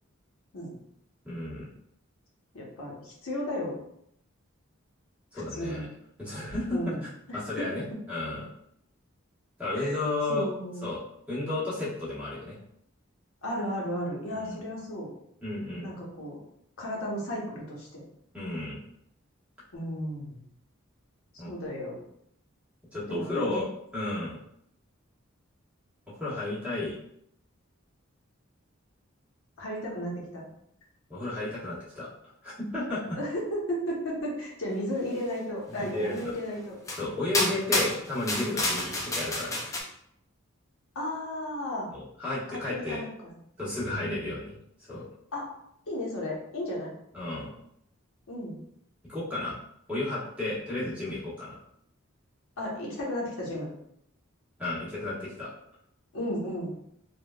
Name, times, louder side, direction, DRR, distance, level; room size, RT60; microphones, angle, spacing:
voice 1, 1.2-1.7 5.3-5.8 6.2-8.5 9.6-10.5 10.8-11.0 11.3-12.6 14.4-14.6 15.4-15.9 18.3-18.8 21.4-21.5 22.9-23.6 23.9-24.4 26.1-27.0 31.1-32.1 32.4-33.2 35.8-36.3 37.0-39.6 41.9-43.0 43.6-44.5 44.9-45.0 47.1-47.5 49.0-49.6 49.9-51.6 54.6-55.5, left 2 dB, 5° right, -9 dB, 1.1 m, -33 dB
voice 2, 2.5-3.8 5.5-5.9 6.7-7.0 7.3-7.7 9.7-9.9 10.3-10.8 13.4-15.1 15.8-16.4 16.8-18.0 19.7-20.4 21.5-22.0 23.1-23.7 29.6-30.5 33.1-36.7 40.9-41.9 42.5-43.3 44.0-44.3 45.3-45.5 45.9-46.9 48.3-48.6 52.6-53.7 56.1-56.7, equal, 90° left, -3 dB, 0.9 m, -34 dB
sound 1, 36.2-36.3 36.9-37.0 37.3-39.8, left 2 dB, 15° left, 0.3 m, -29 dB
3.5 x 2.2 x 2.3 m, 0.73 s
head